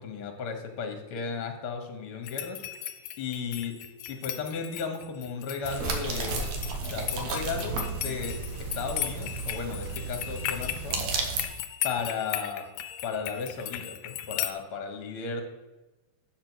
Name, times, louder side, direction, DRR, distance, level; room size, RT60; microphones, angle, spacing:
voice 1, 0.0-2.9 3.2-3.8 4.1-6.5 6.9-11.1 11.8-12.7 13.0-15.4, left 5 dB, 60° left, 4 dB, 1.6 m, -35 dB
sound 1, 2.2-14.5, left 11 dB, 75° left, 1.8 m, -37 dB
sound 2, 5.6-11.5, right 4 dB, 75° right, 2.4 m, -33 dB
8.4 x 6.0 x 6.1 m, 1.1 s
omnidirectional pair, 3.3 m